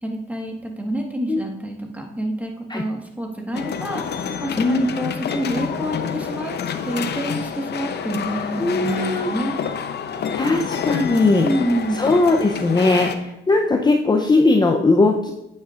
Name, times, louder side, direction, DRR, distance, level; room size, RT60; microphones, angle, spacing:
voice 1, 0.0-6.5 6.8-9.6 11.4-12.0, right 1 dB, 5° right, 1 dB, 1.6 m, -27 dB
sound 1, 3.5-13.2, left 7 dB, 55° left, 0.8 m, -28 dB
voice 2, 4.6-4.9 8.6-9.3 10.4-11.5 11.9-15.3, left 3 dB, 20° left, 2 dB, 0.7 m, -18 dB
9.2 x 8.8 x 2.5 m, 0.88 s
cardioid pair, 90°, 20 cm